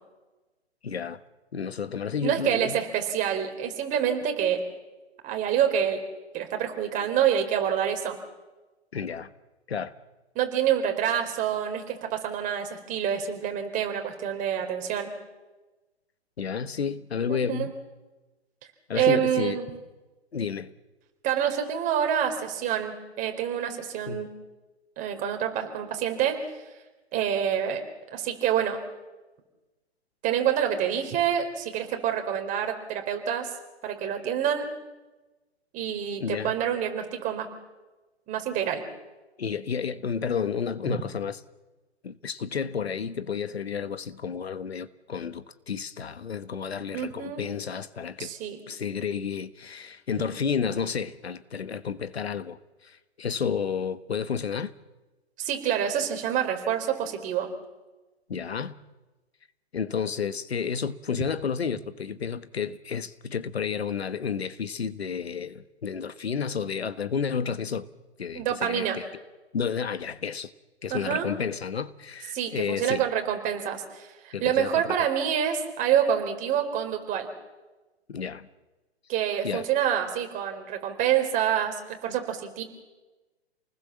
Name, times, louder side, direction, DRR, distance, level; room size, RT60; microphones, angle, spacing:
voice 1, 0.8-1.2 1.5-2.8 8.9-9.3 9.7-9.9 16.4-17.7 18.9-19.6 20.3-20.7 24.1-24.2 36.2-36.5 39.4-41.4 42.0-48.3 48.7-54.7 58.3-58.7 59.7-67.9 68.2-69.0 69.5-70.5 70.8-73.0 74.3-74.9 78.1-78.5 79.4-79.6, left 6 dB, 70° left, 1.5 m, -31 dB
voice 2, 2.2-4.6 5.2-6.0 6.3-8.2 10.3-15.1 17.3-17.7 18.9-19.7 21.2-24.3 25.0-26.4 27.1-27.8 28.1-28.8 30.2-33.5 33.8-34.7 35.7-37.5 38.3-38.8 46.9-47.5 48.2-48.6 55.4-57.5 68.3-69.0 70.9-71.3 72.3-77.3 79.1-82.6, right 9 dB, 25° right, 4.4 m, -27 dB
29.0 x 20.0 x 7.3 m
figure-of-eight pair, 125°, 33 cm